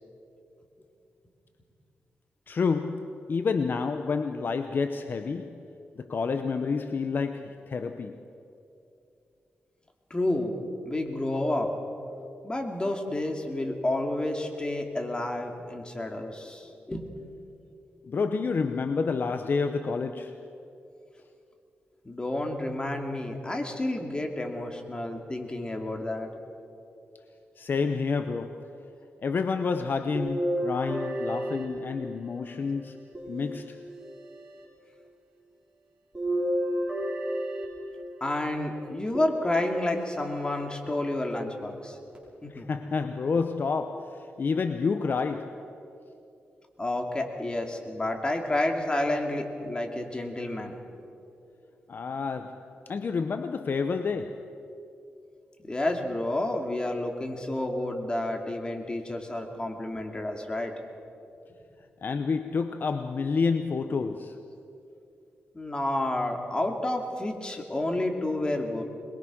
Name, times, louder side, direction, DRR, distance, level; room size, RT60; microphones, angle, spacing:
voice 1, 2.5-5.7 6.0-8.2 18.1-20.5 27.6-28.8 29.2-33.8 42.5-45.7 51.9-54.5 62.0-64.4, left 5 dB, 55° left, 0.8 m, -29 dB
voice 2, 10.1-10.5 10.8-11.7 12.4-17.1 22.0-26.3 38.2-42.0 42.4-42.7 46.8-50.7 55.6-60.7 65.5-68.8, left 1 dB, 25° left, 2.6 m, -30 dB
sound 1, 30.1-32.4 33.1-34.2 36.1-38.2 39.1-40.0 40.7-40.8 42.1-42.2, equal, 20° right, 6.0 m, -31 dB
22.0 x 22.0 x 6.2 m
wide cardioid pair, 95°, 4 cm